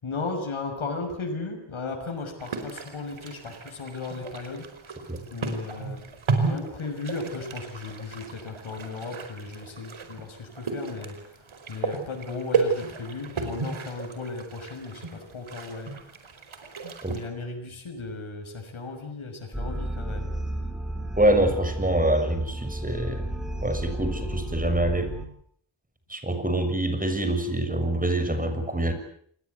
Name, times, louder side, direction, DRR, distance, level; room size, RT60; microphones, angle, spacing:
voice 1, 0.0-4.7 5.3-6.0 6.4-11.2 11.7-15.9 17.1-20.3, left 3 dB, 90° left, 2 dB, 6.3 m, -35 dB
sound 1, 2.4-17.3, right 4 dB, 90° right, 5.0 m, -33 dB
sound 2, 19.5-25.3, right 1 dB, ahead, 6.0 m, -32 dB
voice 2, 21.2-23.2 23.6-25.1 26.1-28.9, right 1 dB, 15° right, 8 dB, 6.7 m, -25 dB
28.5 x 21.5 x 8.2 m, 0.64 s
wide cardioid pair, 95°, 47 cm